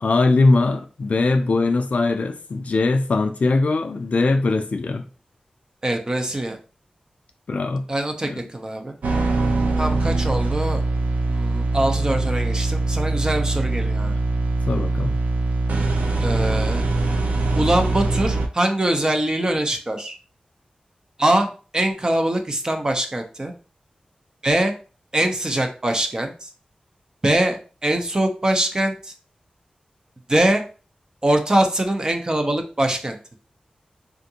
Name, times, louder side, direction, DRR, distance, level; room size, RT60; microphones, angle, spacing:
voice 1, 0.0-5.0 7.5-7.8 8.2-8.3 14.7-15.1, left 3 dB, 60° left, 0.3 m, -20 dB
voice 2, 5.8-6.6 7.9-8.9 9.8-10.8 11.3-14.1 16.2-16.8 17.6-20.2 21.2-23.5 24.4-24.7 25.1-26.5 27.2-29.1 30.3-30.6 31.2-33.2, right 1 dB, 30° right, 0.6 m, -23 dB
sound 1, 9.0-18.5, right 3 dB, 85° right, 0.5 m, -22 dB
3.5 x 2.5 x 2.8 m
wide cardioid pair, 85°, 3 cm